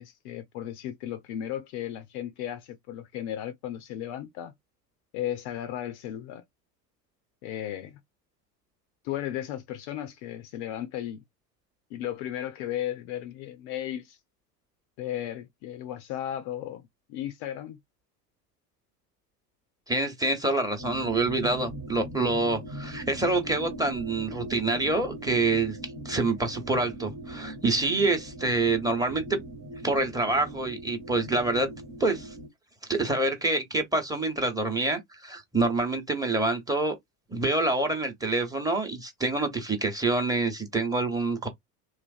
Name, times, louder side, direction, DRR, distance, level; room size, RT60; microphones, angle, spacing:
voice 1, 0.0-4.5 5.1-6.4 7.4-8.0 9.0-11.2 11.9-14.2 15.0-16.8 17.1-17.8, left 11 dB, 45° left, 0.5 m, -35 dB
voice 2, 19.9-25.8 26.0-29.4 29.8-31.7 32.0-32.3 32.9-37.0 37.3-41.5, right 2 dB, 5° right, 0.9 m, -26 dB
sound 1, 20.8-32.5, right 1 dB, 35° right, 1.1 m, -40 dB
3.1 x 2.5 x 2.4 m
figure-of-eight pair, 80°, 49 cm